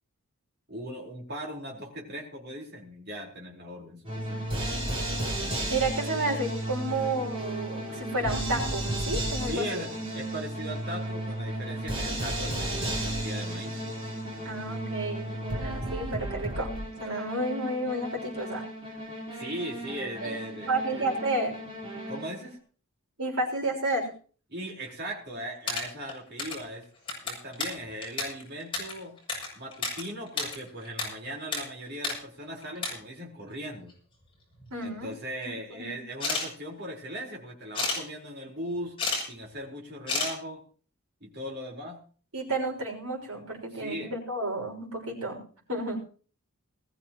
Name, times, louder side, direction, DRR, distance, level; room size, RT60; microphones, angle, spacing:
voice 1, 0.7-4.5 9.5-13.7 19.3-21.1 22.1-22.6 24.5-26.8 27.2-29.2 29.5-33.9 34.8-39.0 39.2-40.6 41.2-42.0 43.7-44.1, equal, 45° right, -1 dB, 4.5 m, -38 dB
sound 1, 4.1-22.5, right 1 dB, 25° right, 4.2 m, -34 dB
voice 2, 5.7-9.8 14.4-16.7 17.0-18.6 20.2-20.4 20.7-21.6 23.2-24.1 34.7-35.1 35.7-36.0 42.3-45.4 45.7-46.0, right 2 dB, 70° right, 0 dB, 6.1 m, -31 dB
sound 2, 25.4-26.7 27.0-30.0 30.3-31.1 31.3-31.6 31.9-32.2 32.6-32.9 33.9-34.0 34.4-35.0 36.1-36.5 37.7-38.0 38.8-39.2 39.5-39.6 40.1-40.3, left 3 dB, 25° left, 7.2 m, -31 dB
21.0 x 14.0 x 3.1 m, 0.42 s
head